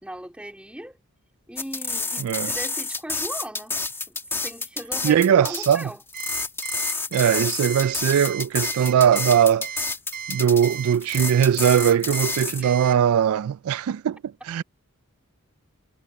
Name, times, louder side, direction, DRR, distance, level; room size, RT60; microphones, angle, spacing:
voice 1, 0.0-1.0 1.5-3.8 4.1-6.0 12.5-12.9, right 1 dB, 5° right, 3.8 m, -38 dB
sound 1, 1.6-12.6, left 3 dB, 10° left, 2.4 m, -29 dB
voice 2, 2.2-2.5 5.0-5.8 7.1-9.7 10.3-14.2 14.4-14.6, right 8 dB, 80° right, 0.3 m, -20 dB
Alarm, 6.1-13.0, right 8 dB, 45° right, 6.1 m, -35 dB
head